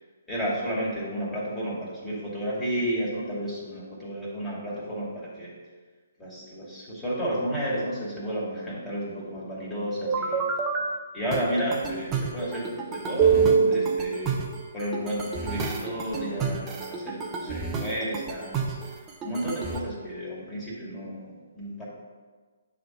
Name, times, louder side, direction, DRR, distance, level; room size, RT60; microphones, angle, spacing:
voice 1, 0.3-5.5 6.2-10.5 11.1-18.8 19.2-21.8, equal, 10° left, -8 dB, 2.6 m, -32 dB
sound 1, 10.1-10.8 11.3-19.8, right 5 dB, 15° right, 0.8 m, -27 dB
9.6 x 3.6 x 5.9 m, 1.4 s
figure-of-eight pair, 130°, 0 cm